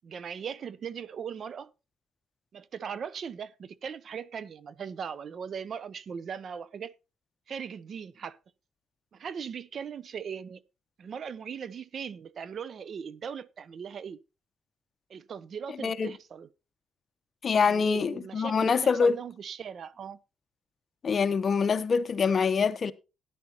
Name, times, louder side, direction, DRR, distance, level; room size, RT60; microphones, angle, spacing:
voice 1, 0.0-1.7 2.5-6.9 7.5-8.4 9.1-10.6 11.0-14.2 15.1-16.5 17.7-20.2, right 7 dB, 55° right, 0.6 m, -39 dB
voice 2, 15.8-16.1 17.4-19.2 21.0-22.9, left 5 dB, 45° left, 0.8 m, -25 dB
13.5 x 10.0 x 2.9 m
cardioid pair, 90°, 0 cm